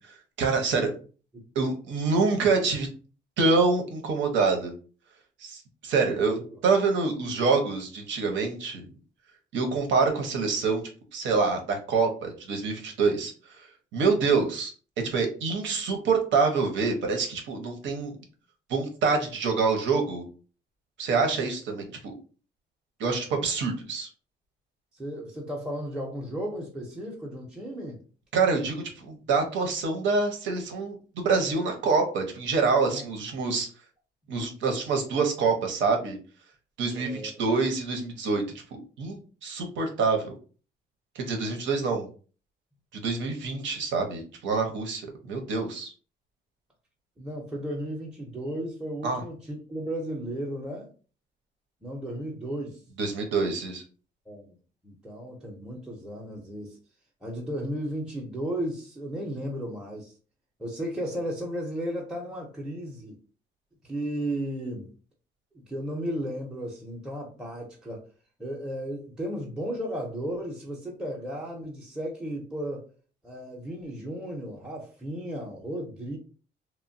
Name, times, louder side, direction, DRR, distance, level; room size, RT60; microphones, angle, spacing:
voice 1, 0.4-0.9 1.5-2.9 3.4-4.7 5.4-6.4 6.6-8.8 9.5-10.8 11.1-13.3 13.9-14.7 15.0-18.2 18.7-20.2 21.0-22.1 23.0-24.1 28.3-33.7 34.3-36.2 36.8-38.4 38.7-40.3 41.2-42.1 43.0-45.9 49.0-49.2 53.0-53.8, right 4 dB, 90° right, 0.8 m, -26 dB
voice 2, 6.0-6.6 24.9-28.0 32.8-33.0 33.3-33.6 36.9-37.3 47.2-50.9 51.8-52.8 54.3-54.5 54.8-56.8 57.2-60.1 60.6-63.2 63.8-64.9 65.5-68.0 68.4-72.8 73.2-76.2, right 1 dB, 5° right, 0.5 m, -34 dB
3.0 x 2.1 x 2.6 m
cardioid pair, 135°, 19 cm